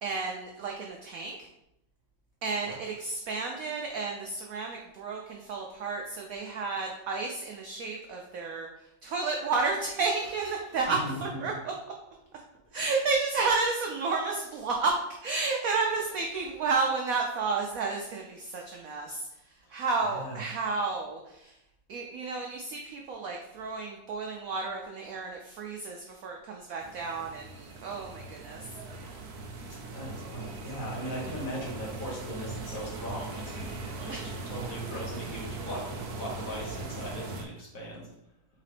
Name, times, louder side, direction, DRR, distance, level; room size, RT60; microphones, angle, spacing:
voice 1, 0.0-1.5 2.4-11.7 12.7-14.9 15.2-19.3 19.7-21.6 21.9-28.7 34.1-34.3, right 4 dB, 80° right, 1 dB, 0.7 m, -31 dB
voice 2, 10.1-11.6 12.8-12.9 14.2-14.3 15.9-16.7 20.0-20.6 29.7-33.7 34.0-38.1, equal, 50° left, -4 dB, 1.6 m, -40 dB
sound 1, 26.8-37.4, right 3 dB, 65° right, 1.1 m, -40 dB
4.1 x 3.7 x 3.3 m, 0.85 s
omnidirectional pair, 2.0 m